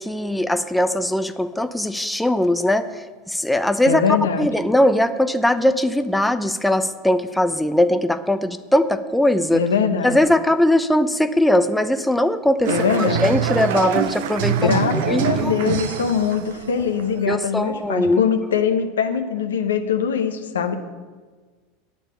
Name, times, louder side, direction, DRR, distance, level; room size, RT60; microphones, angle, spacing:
voice 1, 0.0-4.0 4.4-9.6 10.0-14.8 15.1-15.5 17.3-18.2, left 1 dB, 5° left, 10 dB, 0.7 m, -20 dB
voice 2, 3.8-4.5 9.5-10.2 12.7-13.3 14.6-20.8, left 7 dB, 85° left, 7 dB, 0.9 m, -22 dB
sound 1, 12.6-17.2, right 9 dB, 70° right, 0.8 m, -24 dB
9.1 x 7.1 x 8.8 m, 1.4 s
hypercardioid pair, 85°, 0 cm